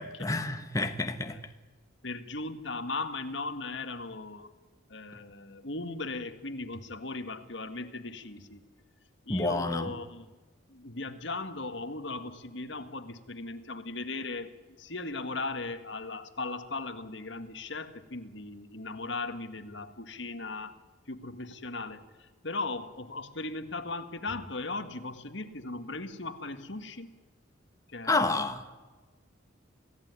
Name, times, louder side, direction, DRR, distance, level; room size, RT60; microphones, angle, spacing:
voice 1, 0.0-1.4 9.3-9.9 28.1-28.7, left 2 dB, 15° left, 6 dB, 1.2 m, -29 dB
voice 2, 2.0-4.5 4.9-8.6 9.2-10.3 10.7-14.5 14.8-20.7 21.1-27.1 27.9-28.3, left 3 dB, 65° left, 9 dB, 1.9 m, -38 dB
28.5 x 16.5 x 9.7 m, 1.3 s
head